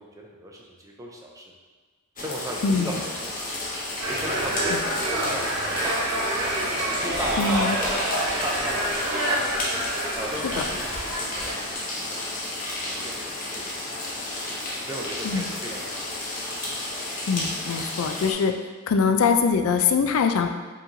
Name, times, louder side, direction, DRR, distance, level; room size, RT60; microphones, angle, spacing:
voice 1, 0.0-1.5 2.2-3.0 3.3-3.5 4.1-6.4 6.7-9.6 10.2-13.7 14.9-16.2, right 1 dB, 15° right, -1 dB, 0.5 m, -37 dB
sound 1, 2.2-18.3, left 1 dB, 40° left, 0.7 m, -32 dB
voice 2, 2.6-3.0 4.7-4.8 7.4-7.8 10.6-10.7 15.2-15.5 17.3-18.5 18.9-20.5, left 5 dB, 65° left, 6 dB, 0.3 m, -23 dB
sound 2, 4.0-11.7, right 1 dB, 80° right, 1.1 m, -28 dB
4.7 x 3.0 x 2.7 m, 1.4 s
head